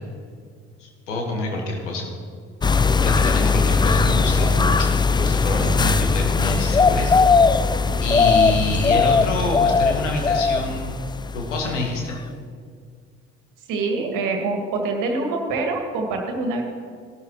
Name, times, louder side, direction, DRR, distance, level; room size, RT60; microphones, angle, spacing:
voice 1, 0.8-2.1 3.0-4.9 5.1-7.2 8.0-10.9 11.3-12.1, left 2 dB, 80° left, 1 dB, 1.6 m, -26 dB
sound 1, 2.6-11.9 12.1-12.2, left 4 dB, 15° left, 0.4 m, -19 dB
voice 2, 13.7-16.6, right 3 dB, 60° right, 3 dB, 2.0 m, -25 dB
17.0 x 12.5 x 3.1 m, 2.1 s
figure-of-eight pair, 50°, 36 cm